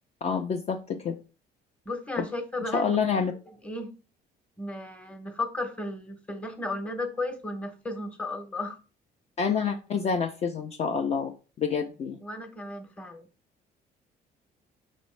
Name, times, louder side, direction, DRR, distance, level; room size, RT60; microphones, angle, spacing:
voice 1, 0.2-1.2 2.2-2.3 2.7-3.3 9.4-11.3 11.6-12.2, left 6 dB, 40° left, 5 dB, 0.4 m, -27 dB
voice 2, 1.9-3.0 3.6-3.9 4.6-8.8 12.2-13.3, left 2 dB, 5° left, 6 dB, 0.8 m, -34 dB
5.3 x 3.0 x 3.1 m, 0.35 s
cardioid pair, 110°, 17 cm